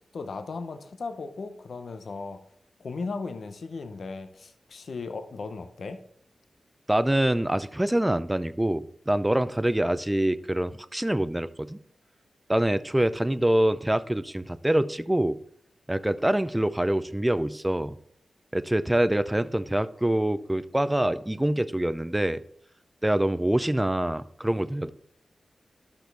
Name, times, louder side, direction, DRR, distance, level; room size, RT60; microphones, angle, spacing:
voice 1, 0.0-2.4 2.8-6.0, left 4 dB, 75° left, 8 dB, 0.7 m, -36 dB
voice 2, 6.9-11.8 12.5-15.4 15.9-17.9 18.5-22.4 23.0-24.9, right 1 dB, 15° right, 13 dB, 0.5 m, -25 dB
11.5 x 6.0 x 3.4 m, 0.68 s
cardioid pair, 45°, 0 cm